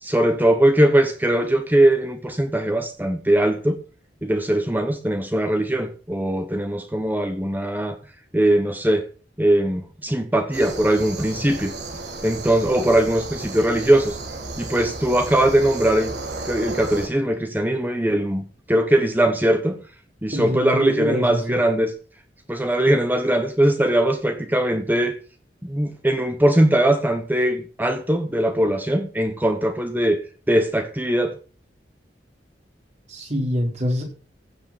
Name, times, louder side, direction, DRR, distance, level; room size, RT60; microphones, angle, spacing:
voice 1, 0.0-3.8 4.2-8.0 8.3-9.0 9.4-11.7 12.2-14.2 14.6-16.1 16.4-19.8 20.2-21.9 22.5-25.2 25.6-30.2 30.5-31.4, right 1 dB, 10° right, 1.1 m, -20 dB
sound 1, 10.5-17.1, right 2 dB, 70° right, 2.8 m, -33 dB
voice 2, 20.3-21.6 33.1-34.0, left 1 dB, 40° right, 4.1 m, -25 dB
15.5 x 6.5 x 6.0 m
head